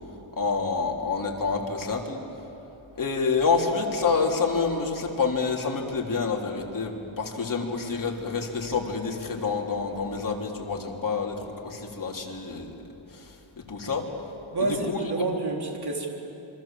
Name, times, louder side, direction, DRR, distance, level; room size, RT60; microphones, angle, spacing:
voice 1, 0.3-2.2 3.0-12.7 13.1-14.1 14.6-15.0, left 4 dB, 40° left, 0 dB, 3.5 m, -28 dB
voice 2, 14.5-16.1, right 2 dB, 50° right, 1 dB, 4.0 m, -28 dB
27.5 x 25.0 x 7.6 m, 2.9 s
wide cardioid pair, 125°, 50 cm